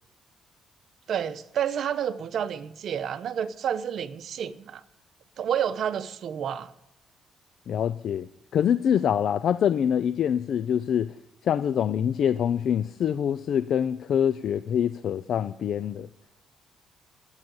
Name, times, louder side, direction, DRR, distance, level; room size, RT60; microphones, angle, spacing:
voice 1, 1.1-4.8 5.4-6.7, right 8 dB, 65° right, 0.8 m, -29 dB
voice 2, 7.7-11.1 11.4-16.1, left 9 dB, 65° left, 0.4 m, -25 dB
12.0 x 8.9 x 7.9 m
cardioid pair, 90°, 0 cm